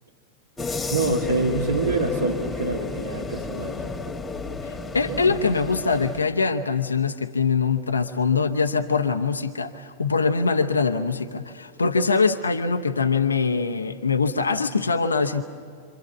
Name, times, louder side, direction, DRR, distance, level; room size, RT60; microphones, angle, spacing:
sound 1, 0.6-6.2, left 3 dB, 15° left, 2.0 m, -31 dB
voice 1, 0.9-3.8 5.1-5.4, right 3 dB, 75° right, -1 dB, 2.0 m, -26 dB
voice 2, 4.6-15.4, left 4 dB, 75° left, 7 dB, 0.9 m, -23 dB
27.5 x 26.5 x 7.2 m, 2.3 s
figure-of-eight pair, 90°, 0 cm